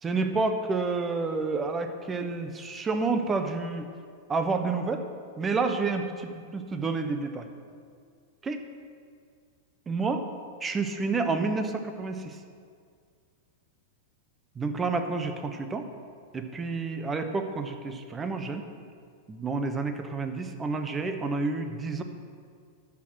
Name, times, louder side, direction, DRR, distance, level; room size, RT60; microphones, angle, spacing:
voice 1, 0.0-3.9 4.3-5.0 5.4-7.5 8.4-8.6 9.9-10.2 10.6-12.4 14.6-15.9 16.3-18.6 19.3-22.0, right 4 dB, 15° right, 7 dB, 0.9 m, -29 dB
11.0 x 6.0 x 6.3 m, 2.1 s
hypercardioid pair, 130°, 0 cm